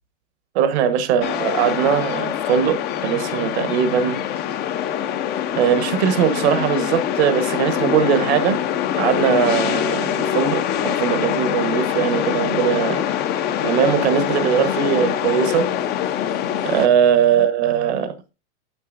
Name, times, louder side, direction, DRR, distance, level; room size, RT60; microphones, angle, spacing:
voice 1, 0.5-4.2 5.5-8.6 9.0-13.0 13.6-15.7 16.6-18.1, right 8 dB, 65° right, 1.2 m, -20 dB
sound 1, 1.2-16.9, left 10 dB, 30° left, 0.6 m, -24 dB
9.3 x 7.8 x 2.5 m
supercardioid pair, 145°, 35 cm